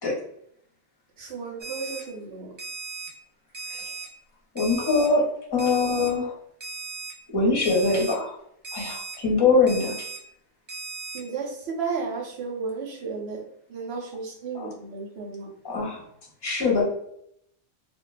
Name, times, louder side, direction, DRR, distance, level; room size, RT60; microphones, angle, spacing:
voice 1, 1.2-2.5 11.1-13.4 13.7-15.5, right 4 dB, 60° right, 0 dB, 0.9 m, -33 dB
Alarm, 1.6-2.0 2.6-3.1 3.5-4.0 4.6-5.1 5.6-6.1 6.6-7.1 7.6-8.1 8.6-9.1 9.7-10.2 10.7-11.2, right 3 dB, 45° right, 0.3 m, -37 dB
voice 2, 4.5-5.2 5.5-6.3 7.3-8.3 8.7-10.0 14.5-14.7 15.6-16.0 16.4-16.8, left 3 dB, 25° left, -2 dB, 0.7 m, -23 dB
2.4 x 2.4 x 3.1 m, 0.71 s
omnidirectional pair, 1.3 m